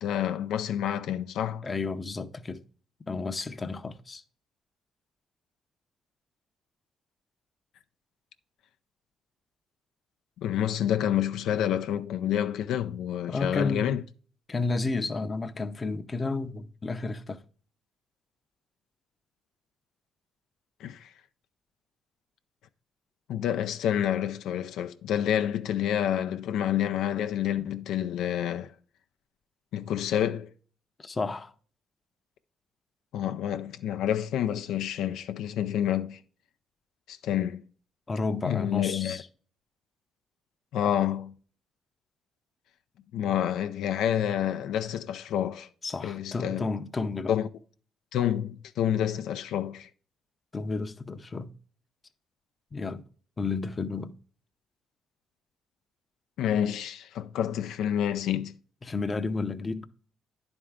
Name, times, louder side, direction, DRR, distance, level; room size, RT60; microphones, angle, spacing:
voice 1, 0.0-1.6 10.4-14.0 20.8-21.1 23.3-28.7 29.7-30.5 33.1-36.2 37.1-37.6 38.4-39.2 40.7-41.3 43.1-45.7 46.0-46.7 47.3-47.5 48.1-49.9 56.4-58.5, left 10 dB, 85° left, 0.4 m, -28 dB
voice 2, 1.6-2.6 3.1-4.2 13.3-13.9 14.5-17.4 27.6-27.7 31.0-31.5 38.1-39.3 45.8-47.3 50.5-51.5 52.7-53.0 53.4-54.2 58.8-59.9, left 3 dB, 30° left, 0.6 m, -32 dB
10.0 x 4.4 x 3.6 m
cardioid pair, 90°, 0 cm